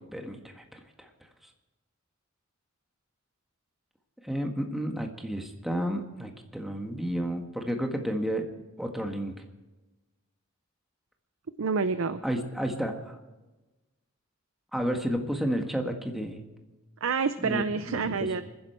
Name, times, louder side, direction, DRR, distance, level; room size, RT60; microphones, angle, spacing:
voice 1, 0.1-1.1 4.2-8.4 8.8-9.3 12.2-12.9 14.7-16.4 17.4-18.0, equal, ahead, 3 dB, 1.6 m, -31 dB
voice 2, 11.6-12.2 17.0-18.4, right 4 dB, 75° right, 11 dB, 0.6 m, -28 dB
25.5 x 10.5 x 4.5 m, 1.1 s
head